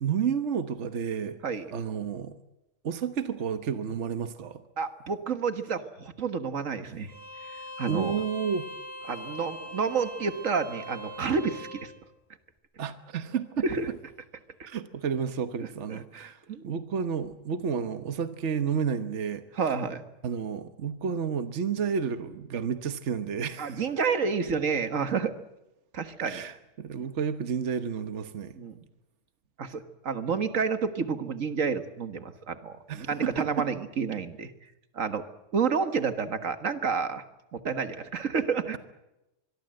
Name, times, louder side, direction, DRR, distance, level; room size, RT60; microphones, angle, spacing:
voice 1, 0.0-1.4 1.7-2.4 2.8-4.6 7.9-8.7 12.8-13.7 14.7-19.4 20.2-23.8 26.2-28.5 32.9-33.7, right 7 dB, 65° right, 10 dB, 1.4 m, -31 dB
voice 2, 4.8-7.1 7.5-8.2 9.1-11.9 13.6-13.9 15.9-16.7 19.6-20.0 23.6-25.3 25.9-26.4 28.5-28.8 29.6-34.5 34.9-35.2 35.5-37.2 37.5-38.8, right 5 dB, 90° right, 10 dB, 1.9 m, -30 dB
Bowed string instrument, 7.1-11.9, equal, 10° left, 4.6 m, -41 dB
25.0 x 22.5 x 7.8 m, 0.93 s
omnidirectional pair, 1.3 m